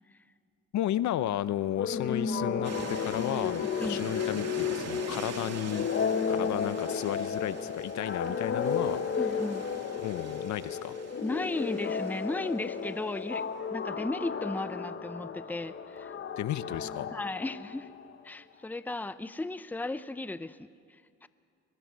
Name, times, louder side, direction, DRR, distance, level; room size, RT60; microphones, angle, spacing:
voice 1, 0.7-5.9 6.3-9.0 10.0-11.0 16.4-17.1, left 12 dB, 70° left, 15 dB, 0.7 m, -33 dB
sound 1, 1.8-18.2, left 6 dB, 40° left, 1.0 m, -33 dB
sound 2, 2.6-12.9, right 5 dB, 55° right, 2.5 m, -44 dB
voice 2, 3.6-4.0 9.2-9.6 11.2-13.4 13.7-16.1 17.1-17.9 18.2-21.3, left 2 dB, 5° left, 13 dB, 0.7 m, -35 dB
23.5 x 21.0 x 6.3 m, 2.3 s
cardioid pair, 90°, 30 cm